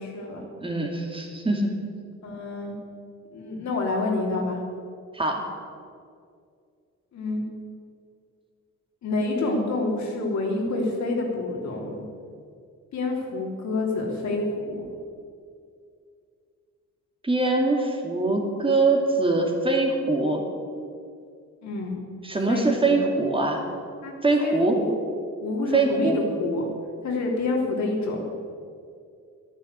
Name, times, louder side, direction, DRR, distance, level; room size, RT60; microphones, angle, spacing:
voice 1, 0.0-0.4 2.2-2.7 3.3-4.6 7.1-7.4 9.0-12.0 12.9-14.9 21.6-22.0 22.5-23.0 24.0-24.1 24.4-24.9 25.4-26.7 27.0-28.2, left 2 dB, 65° left, -1 dB, 3.3 m, -28 dB
voice 2, 0.6-1.7 5.1-5.4 17.2-20.4 22.2-23.7 24.2-24.8 25.7-26.2, right 3 dB, 15° right, 1 dB, 2.3 m, -23 dB
11.0 x 10.0 x 8.2 m, 2.3 s
cardioid pair, 90°, 30 cm